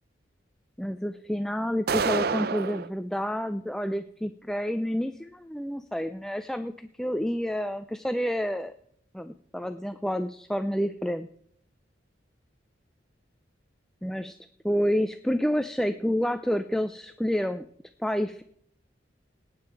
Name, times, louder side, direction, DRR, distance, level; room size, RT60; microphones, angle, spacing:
voice 1, 0.8-8.7 9.1-11.3 14.0-14.4 14.6-17.7 18.0-18.4, equal, 5° left, 9 dB, 0.4 m, -29 dB
sound 1, 1.9-2.9, right 5 dB, 55° right, 0.5 m, -27 dB
18.5 x 8.6 x 4.6 m, 0.67 s
head